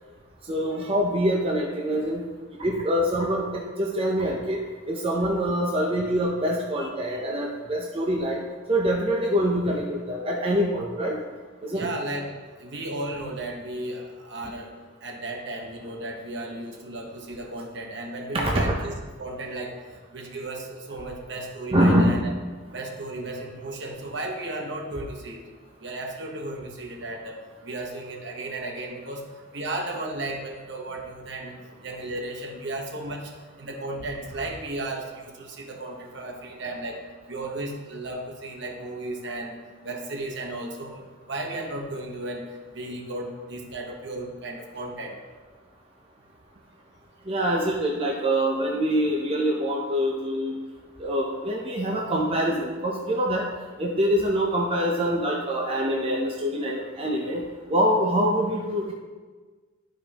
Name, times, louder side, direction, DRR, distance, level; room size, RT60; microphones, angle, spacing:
voice 1, 0.5-2.3 2.6-8.4 8.7-11.2 11.6-11.9 18.3-18.7 21.7-22.2 47.3-50.6 51.0-53.5 53.8-57.4 57.7-58.9, equal, 30° right, -1 dB, 0.7 m, -25 dB
voice 2, 6.8-7.2 11.7-12.3 12.6-14.7 15.0-22.3 22.7-25.4 25.8-29.2 29.5-33.3 33.6-37.0 37.3-39.6 39.8-45.2, right 2 dB, 60° right, 1 dB, 1.1 m, -35 dB
12.0 x 5.2 x 2.9 m, 1.4 s
head